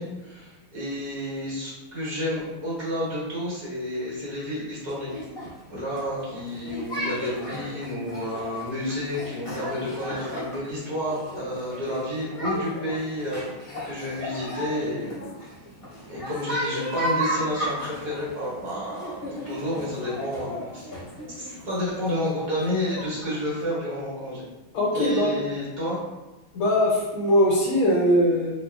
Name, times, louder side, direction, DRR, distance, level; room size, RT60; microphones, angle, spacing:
voice 1, 0.0-5.1 5.7-15.4 16.1-20.9 21.4-24.4 24.9-26.0, left 1 dB, 50° right, -7 dB, 1.9 m, -30 dB
sound 1, 4.9-23.6, equal, 60° left, 0.3 m, -35 dB
voice 2, 24.7-25.3 26.5-28.5, equal, 80° left, -4 dB, 1.5 m, -21 dB
3.6 x 3.0 x 2.2 m, 1.1 s
omnidirectional pair, 2.3 m